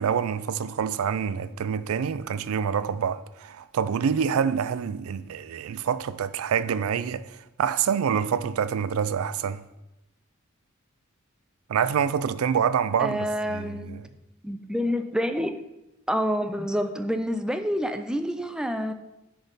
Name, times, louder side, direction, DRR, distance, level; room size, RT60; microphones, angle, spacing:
voice 1, 0.0-9.6 11.7-14.1, right 7 dB, 80° right, 0.4 m, -26 dB
voice 2, 13.0-13.9 14.4-15.6 16.1-18.9, equal, 5° right, 0.3 m, -27 dB
9.9 x 3.5 x 4.0 m
head